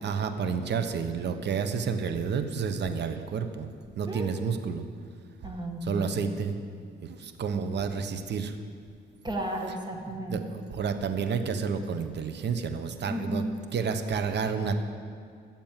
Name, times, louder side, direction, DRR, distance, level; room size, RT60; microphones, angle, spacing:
voice 1, 0.0-3.7 4.0-4.9 5.8-6.6 7.0-8.6 10.3-13.5 13.7-14.8, right 6 dB, 60° right, 8 dB, 1.1 m, -30 dB
voice 2, 4.1-4.4 5.4-6.3 9.2-10.6 13.1-13.5, right 1 dB, 20° right, 2 dB, 1.7 m, -34 dB
14.0 x 7.4 x 7.5 m, 2.2 s
cardioid pair, 90°, 20 cm